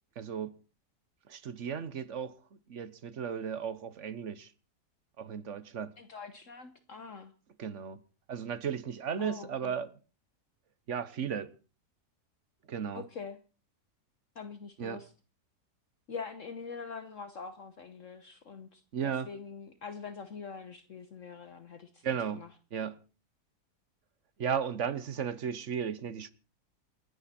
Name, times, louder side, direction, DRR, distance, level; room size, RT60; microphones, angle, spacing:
voice 1, 0.2-0.5 1.3-2.3 2.7-4.5 5.2-5.9 7.6-8.0 8.3-9.9 10.9-11.5 12.7-13.0 14.8-15.0 18.9-19.3 22.0-22.4 22.7-23.0 24.4-26.3, right 7 dB, 50° right, 1.2 m, -35 dB
voice 2, 6.0-7.3 9.2-9.7 12.9-13.4 14.3-15.1 16.1-22.5, left 5 dB, 55° left, 1.4 m, -44 dB
28.0 x 10.5 x 4.3 m
omnidirectional pair, 1.7 m